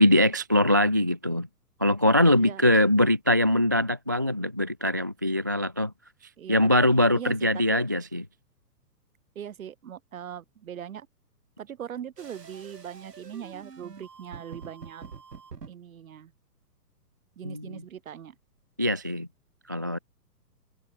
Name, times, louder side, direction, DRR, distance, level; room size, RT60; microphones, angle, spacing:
voice 1, 0.0-1.5 1.8-5.9 6.5-8.2 17.4-17.8 18.8-19.3 19.7-20.0, left 1 dB, 15° right, 0.4 m, -22 dB
voice 2, 6.4-6.7 7.1-7.8 9.3-11.1 11.6-15.0 15.7-16.3 17.4-18.4, right 9 dB, 55° right, 6.2 m, -40 dB
sound 1, 12.2-15.7, right 5 dB, 75° right, 5.7 m, -46 dB
figure-of-eight pair, 125°, 49 cm